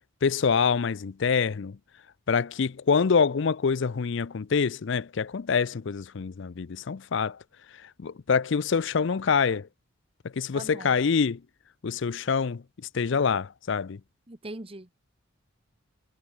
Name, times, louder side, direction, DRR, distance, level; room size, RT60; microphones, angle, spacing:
voice 1, 0.2-1.8 2.3-7.4 7.7-9.7 10.2-11.4 11.8-14.0, left 5 dB, 55° left, 0.5 m, -26 dB
voice 2, 10.5-11.0 14.3-15.0, right 2 dB, 25° right, 1.2 m, -41 dB
head